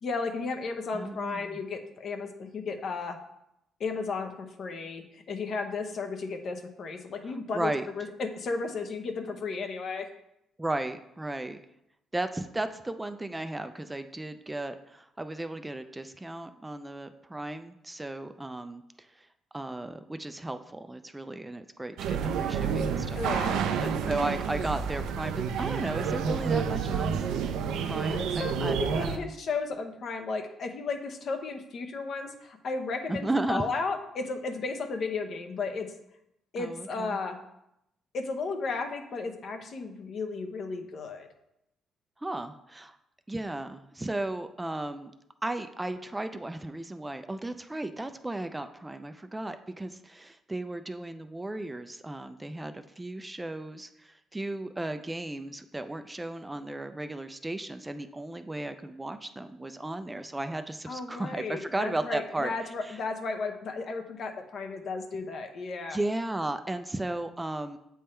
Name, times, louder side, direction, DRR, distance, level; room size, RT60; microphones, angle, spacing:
voice 1, 0.0-3.2 3.8-10.1 23.2-23.6 28.1-35.9 36.5-37.4 38.1-41.3 60.9-66.0, left 4 dB, 55° left, 6 dB, 0.8 m, -34 dB
voice 2, 0.9-1.6 7.3-7.8 10.6-11.6 12.1-19.3 19.5-27.2 27.8-29.3 33.1-33.7 36.6-37.2 42.2-43.0 43.3-45.1 45.4-62.5 62.8-63.0 65.9-67.8, right 2 dB, 15° right, 9 dB, 0.4 m, -35 dB
sound 1, 22.0-29.2, right 7 dB, 85° right, 0.5 m, -29 dB
7.5 x 3.5 x 4.3 m, 0.82 s
cardioid pair, 100°, 0 cm